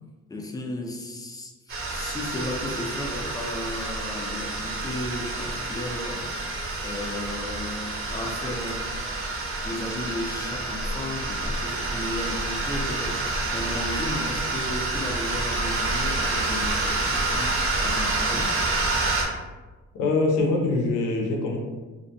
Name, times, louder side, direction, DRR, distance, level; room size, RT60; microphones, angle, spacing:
voice 1, 0.3-6.3 6.8-8.9 9.6-18.6, left 1 dB, 15° left, 1 dB, 0.4 m, -34 dB
sound 1, 1.7-19.3, right 2 dB, 45° right, 0.6 m, -28 dB
voice 2, 20.0-21.6, left 3 dB, 85° left, 0 dB, 0.5 m, -23 dB
2.5 x 2.1 x 2.7 m, 1.3 s
cardioid pair, 90°, 30 cm